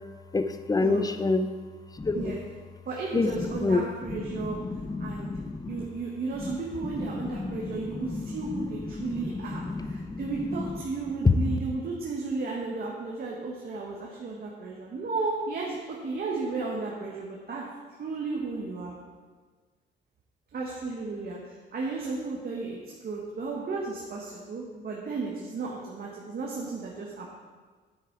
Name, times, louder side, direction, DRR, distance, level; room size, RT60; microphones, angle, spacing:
voice 1, 0.3-1.5 2.0-2.4 3.1-3.8 4.1-5.9 6.4-6.6 6.8-8.4 8.9-10.2 11.2-11.6, left 3 dB, 20° left, 9 dB, 0.7 m, -28 dB
voice 2, 2.8-4.6 5.0-5.3 5.7-17.6 18.0-18.9 20.5-27.3, right 3 dB, 50° right, -2 dB, 1.6 m, -34 dB
9.5 x 8.6 x 4.7 m, 1.4 s
cardioid pair, 90°, 20 cm